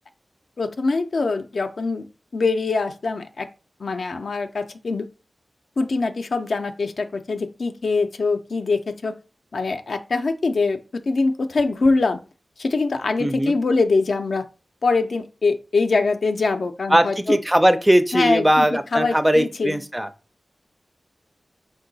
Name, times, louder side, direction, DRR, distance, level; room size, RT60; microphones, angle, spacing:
voice 1, 0.6-2.1 2.3-3.5 3.8-5.1 5.8-9.2 9.5-12.2 12.6-14.4 14.8-17.4 18.1-19.8, left 3 dB, 70° left, 7 dB, 0.4 m, -23 dB
voice 2, 13.2-13.5 16.9-20.1, right 1 dB, 10° right, 10 dB, 0.4 m, -19 dB
4.5 x 2.2 x 3.9 m, 0.32 s
wide cardioid pair, 80°, 0 cm